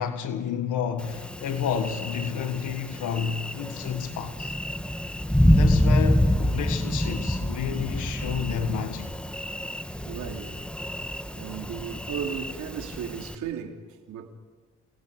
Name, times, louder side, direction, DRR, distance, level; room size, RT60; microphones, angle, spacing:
voice 1, 0.0-4.5 5.5-9.1, left 7 dB, 85° left, 1.7 m, -30 dB
Thunder, 1.0-13.4, equal, 5° left, 1.5 m, -27 dB
voice 2, 9.5-10.6 10.9-11.0 11.3-14.3, right 8 dB, 80° right, 3.0 m, -36 dB
29.5 x 19.5 x 5.0 m
cardioid pair, 90°, 30 cm